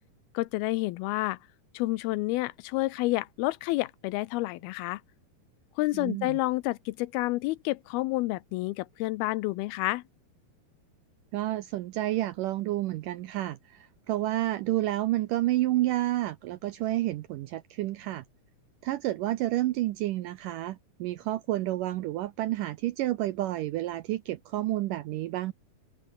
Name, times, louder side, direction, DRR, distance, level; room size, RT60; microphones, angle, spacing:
voice 1, 0.3-1.4 1.7-5.0 5.8-10.0, left 19 dB, 85° left, 2.4 m, -29 dB
voice 2, 5.9-6.4 11.3-18.2 18.8-25.5, right 15 dB, 80° right, 2.0 m, -30 dB
omnidirectional pair, 4.6 m